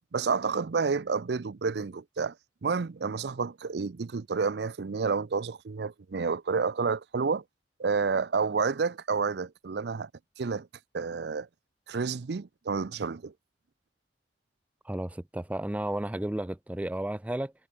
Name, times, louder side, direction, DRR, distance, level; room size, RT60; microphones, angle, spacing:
voice 1, 0.1-2.3 2.6-7.4 7.8-10.1 10.4-10.7 10.9-11.5 11.9-13.3, right 5 dB, 65° right, 0.5 m, -29 dB
voice 2, 14.9-17.5, right 1 dB, 10° right, 0.4 m, -33 dB
head